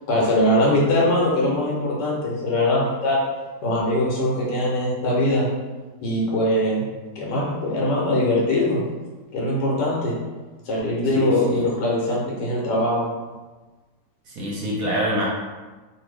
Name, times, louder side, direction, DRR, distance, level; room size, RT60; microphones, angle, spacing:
voice 1, 0.1-3.2 3.6-5.5 6.0-6.8 7.1-8.8 9.3-10.1 10.6-13.1, left 1 dB, 75° left, -4 dB, 1.3 m, -21 dB
voice 2, 11.1-11.6 14.3-15.3, equal, 65° right, -4 dB, 1.0 m, -26 dB
2.7 x 2.6 x 3.1 m, 1.3 s
omnidirectional pair, 1.9 m